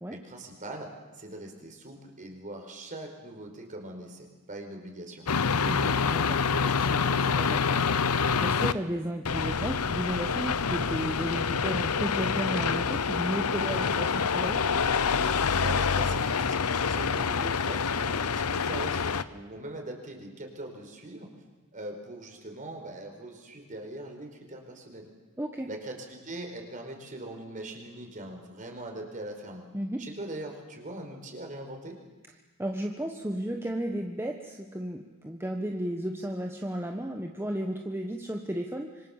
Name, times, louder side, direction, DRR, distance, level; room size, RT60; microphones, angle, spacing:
voice 1, 0.1-5.5 15.3-21.3 21.7-25.1 25.7-29.6 30.0-32.0, right 1 dB, 35° right, 4 dB, 4.6 m, -41 dB
sound 1, 5.3-8.7 9.3-19.2, left 5 dB, 85° left, 0.9 m, -27 dB
voice 2, 5.6-8.0 8.4-14.6 25.4-25.7 29.7-30.1 32.6-39.1, right 1 dB, 10° right, 2 dB, 1.3 m, -34 dB
26.5 x 25.0 x 7.3 m, 1.2 s
head